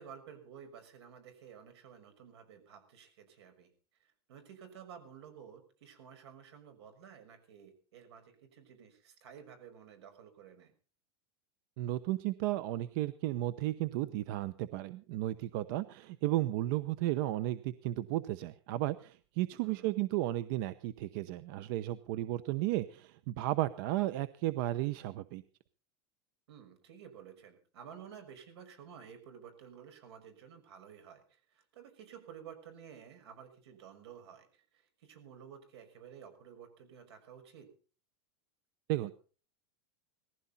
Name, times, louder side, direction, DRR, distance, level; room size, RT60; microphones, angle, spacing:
voice 1, 0.0-3.7 4.0-10.7 19.6-19.9 26.5-37.7, right 8 dB, 85° right, 7 dB, 6.1 m, -53 dB
voice 2, 11.8-25.4 38.9-39.1, right 15 dB, 55° right, 14 dB, 0.8 m, -34 dB
19.0 x 15.5 x 4.2 m, 0.39 s
supercardioid pair, 160°, 14 cm